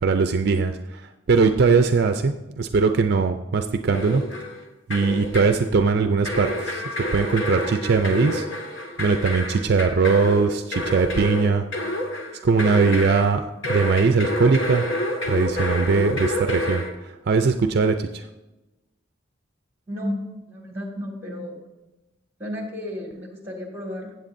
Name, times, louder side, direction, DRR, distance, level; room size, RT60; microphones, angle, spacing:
voice 1, 0.0-4.2 4.9-8.5 9.0-11.7 12.4-14.9 15.2-18.3, right 4 dB, 55° right, 7 dB, 0.4 m, -21 dB
sound 1, 3.9-4.6 4.9-5.6 6.2-13.3 13.6-16.9, left 1 dB, 80° left, 1.9 m, -28 dB
voice 2, 19.9-21.6 22.4-24.1, left 1 dB, 15° right, 0 dB, 2.1 m, -33 dB
16.0 x 7.9 x 2.6 m, 1.0 s
head